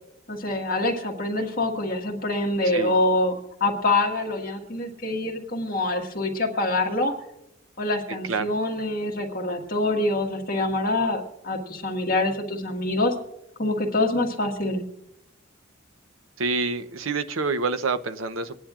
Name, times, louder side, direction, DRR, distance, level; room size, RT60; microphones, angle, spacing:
voice 1, 0.3-3.3 3.6-7.1 7.8-13.1 13.6-14.8, left 2 dB, 45° left, 0 dB, 1.7 m, -25 dB
voice 2, 2.6-3.0 8.2-8.5 16.4-18.5, right 4 dB, 80° right, 11 dB, 0.8 m, -27 dB
25.5 x 10.0 x 2.5 m, 0.87 s
head